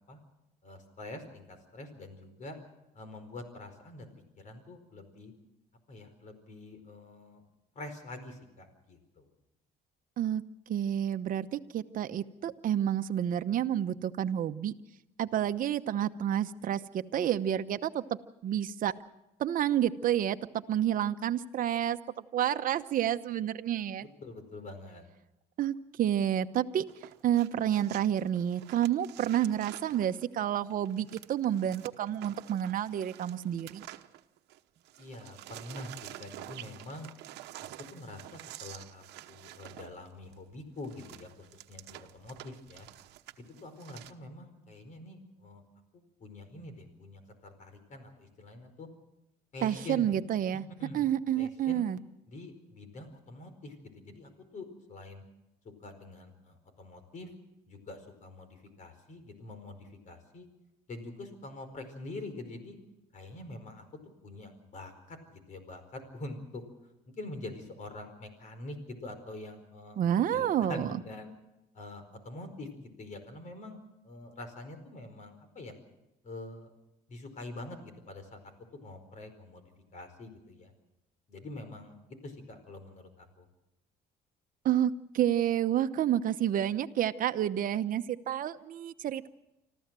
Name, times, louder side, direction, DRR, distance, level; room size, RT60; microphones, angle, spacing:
voice 1, 0.6-2.6 2.9-5.3 5.9-7.4 7.7-9.3 24.0-25.0 35.0-37.1 37.9-42.9 43.6-45.6 45.9-48.9 49.5-50.2 50.8-51.1 51.4-51.8 52.3-53.7 54.0-55.2 55.8-57.3 57.7-60.5 60.9-62.8 63.1-63.8 64.2-66.6 67.1-70.0 70.3-71.3 71.7-73.8 74.0-75.7 76.2-76.7 77.1-78.4 78.8-79.7 79.9-80.7 81.3-83.5, left 2 dB, 45° left, 9 dB, 4.8 m, -45 dB
voice 2, 10.7-14.7 15.2-18.9 19.4-22.0 22.3-24.1 25.6-26.8 27.2-33.8 49.6-50.6 50.9-52.0 70.0-70.9 84.6-89.3, right 10 dB, 55° right, 9 dB, 1.0 m, -29 dB
sound 1, 26.9-34.6 34.8-44.1, right 15 dB, 85° right, 1.0 m, -49 dB
26.0 x 14.5 x 7.6 m, 0.94 s
cardioid pair, 110°, 17 cm